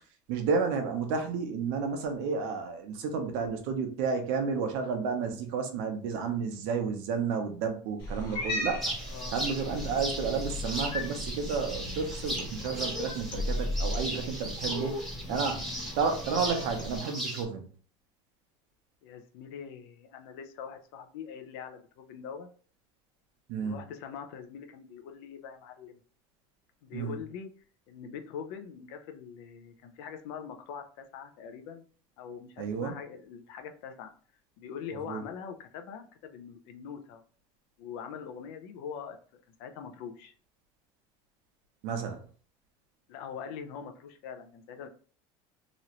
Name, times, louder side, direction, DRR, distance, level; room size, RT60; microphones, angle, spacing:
voice 1, 0.3-8.8 9.3-15.0 15.3-15.6 16.0-17.6 23.5-23.8 26.9-27.2 32.6-32.9 35.1-35.2 41.8-42.2, right 5 dB, 70° right, 5 dB, 0.8 m, -31 dB
Cat, 8.0-17.0, left 1 dB, 40° left, 1.1 m, -36 dB
sound 1, 8.8-17.4, right 1 dB, ahead, 0.8 m, -38 dB
voice 2, 9.0-9.4 15.2-15.9 19.0-22.5 23.6-26.0 26.8-27.5 27.9-31.8 32.2-34.1 34.6-37.2 37.8-39.2 39.6-40.3 43.1-44.9, left 7 dB, 75° left, 6 dB, 0.6 m, -43 dB
3.0 x 2.5 x 2.9 m, 0.42 s
cardioid pair, 165°, 12 cm